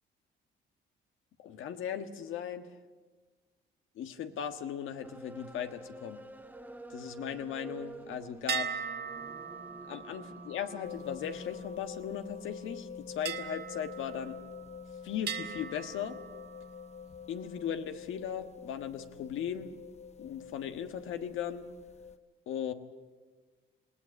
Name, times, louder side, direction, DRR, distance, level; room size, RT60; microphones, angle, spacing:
voice 1, 1.4-2.7 3.9-6.2 6.9-8.7 9.9-14.4 15.0-16.2 17.3-19.8 20.2-21.7 22.5-22.7, left 8 dB, 85° left, 8 dB, 1.4 m, -38 dB
sound 1, 5.0-11.7, right 2 dB, 10° right, 1.4 m, -49 dB
sound 2, 8.5-12.2 13.2-14.8 15.3-16.9, right 7 dB, 55° right, 1.5 m, -40 dB
sound 3, 10.8-22.2, left 6 dB, 35° left, 0.7 m, -47 dB
20.0 x 18.0 x 9.7 m, 1.4 s
cardioid pair, 90°, 20 cm